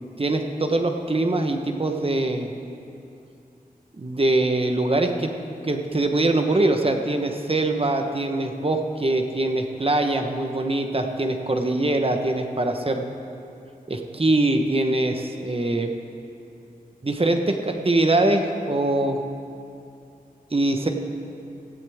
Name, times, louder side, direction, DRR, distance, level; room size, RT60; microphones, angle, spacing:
voice 1, 0.2-2.5 4.0-5.3 5.6-13.0 13.9-15.9 17.0-19.2 20.5-20.9, right 2 dB, 40° right, 4 dB, 1.1 m, -23 dB
18.0 x 14.5 x 3.6 m, 2.6 s
wide cardioid pair, 70°, 15 cm